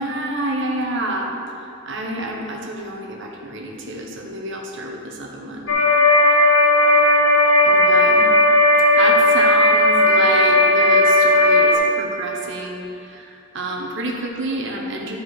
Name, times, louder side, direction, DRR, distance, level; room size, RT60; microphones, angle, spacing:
voice 1, 0.0-1.3 1.9-5.8 7.6-8.3 8.9-15.2, right 1 dB, 55° right, 0 dB, 1.2 m, -28 dB
sound 1, 5.7-11.7, left 1 dB, 60° left, 0.9 m, -15 dB
12.0 x 4.8 x 4.9 m, 2.6 s
head